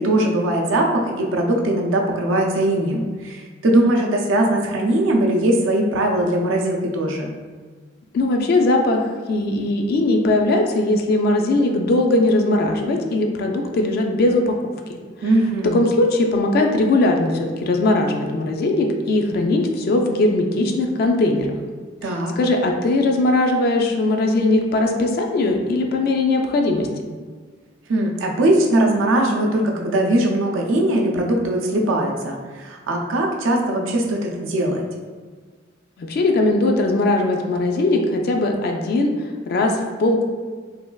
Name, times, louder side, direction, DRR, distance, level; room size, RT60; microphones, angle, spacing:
voice 1, 0.0-7.3 15.2-15.8 22.0-22.3 27.9-34.8, right 1 dB, 90° right, 1 dB, 0.4 m, -20 dB
voice 2, 8.1-9.0 9.3-15.3 15.7-21.5 22.4-26.9 36.0-39.1 39.5-40.3, left 2 dB, 50° left, 3 dB, 0.3 m, -19 dB
3.2 x 2.3 x 2.2 m, 1.5 s
head